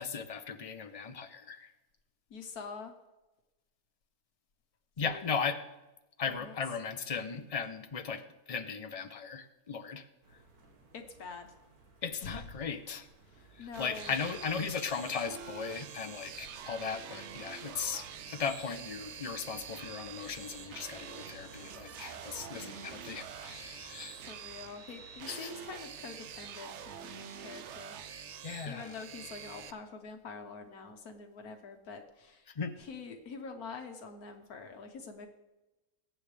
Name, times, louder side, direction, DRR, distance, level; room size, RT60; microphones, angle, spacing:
voice 1, 0.0-1.7 5.0-5.6 6.2-10.1 12.0-13.1 13.5-24.2 25.3-25.5 28.4-29.0 32.5-32.8, left 6 dB, 45° left, 8 dB, 0.5 m, -37 dB
voice 2, 2.3-2.9 5.0-5.4 6.3-6.6 10.9-11.5 12.2-12.4 13.2-14.1 24.1-28.0 28.7-32.5 32.8-35.3, left 5 dB, 75° left, 5 dB, 1.6 m, -45 dB
sound 1, 10.2-25.6, right 3 dB, 75° right, 2.1 m, -57 dB
sound 2, 13.7-29.7, right 8 dB, 60° right, 0.8 m, -46 dB
22.0 x 8.9 x 3.3 m, 1.0 s
omnidirectional pair, 1.6 m